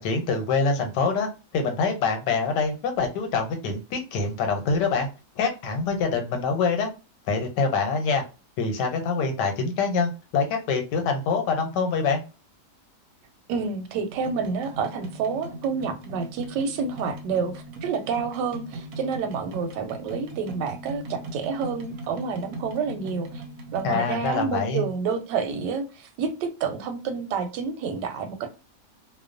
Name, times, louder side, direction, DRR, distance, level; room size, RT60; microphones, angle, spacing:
voice 1, 0.0-5.1 5.4-6.9 7.3-8.2 8.6-12.2 23.8-24.8, left 4 dB, 90° left, 1.3 m, -25 dB
voice 2, 13.5-23.3 23.7-28.6, right 5 dB, 85° right, 1.2 m, -29 dB
sound 1, 14.1-24.5, right 1 dB, 70° right, 0.9 m, -39 dB
2.9 x 2.0 x 2.5 m
omnidirectional pair, 1.8 m